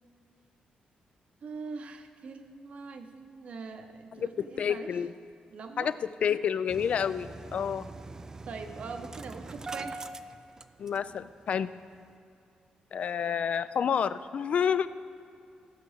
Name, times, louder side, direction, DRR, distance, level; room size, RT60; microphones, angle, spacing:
voice 1, 1.4-4.9 5.5-5.9 8.5-10.1, right 4 dB, 50° right, 6 dB, 0.9 m, -42 dB
voice 2, 4.1-5.1 5.8-5.9 6.2-7.9 10.8-11.7 12.9-14.9, left 7 dB, 50° left, 14 dB, 0.3 m, -29 dB
Engine starting, 6.7-11.2 11.5-11.6 11.9-12.1, right 3 dB, 20° right, 0.3 m, -42 dB
15.5 x 5.3 x 6.4 m, 2.5 s
wide cardioid pair, 145°, 3 cm